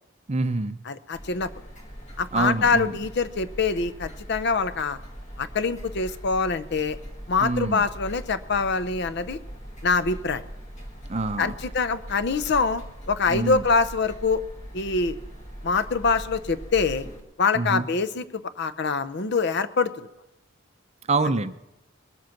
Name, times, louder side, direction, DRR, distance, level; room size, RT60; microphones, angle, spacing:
voice 1, 0.3-0.8 2.3-3.0 7.4-7.8 11.1-11.5 13.3-13.6 17.5-17.9 21.1-21.5, right 3 dB, 30° right, 11 dB, 0.5 m, -26 dB
voice 2, 0.9-1.5 2.2-5.0 5.4-7.0 7.3-9.4 9.8-10.4 11.4-14.4 14.7-15.2 15.6-17.1 17.4-19.9, left 4 dB, 55° left, 13 dB, 0.6 m, -24 dB
sound 1, 1.1-17.2, equal, 35° left, 1.9 m, -41 dB
21.0 x 7.8 x 5.9 m, 0.90 s
head